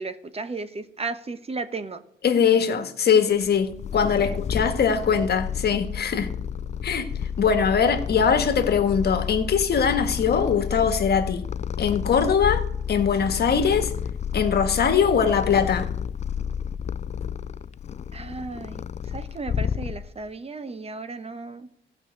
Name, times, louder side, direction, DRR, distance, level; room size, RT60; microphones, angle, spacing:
voice 1, 0.0-2.0 4.2-4.3 18.1-18.8 19.1-21.7, right 3 dB, 30° right, 1.0 m, -34 dB
voice 2, 2.2-6.3 6.8-11.4 11.8-13.9 14.3-15.9, left 6 dB, 55° left, 1.6 m, -22 dB
Purr, 3.4-20.3, left 8 dB, 35° left, 0.4 m, -31 dB
15.0 x 5.7 x 8.3 m
cardioid pair, 90°, 20 cm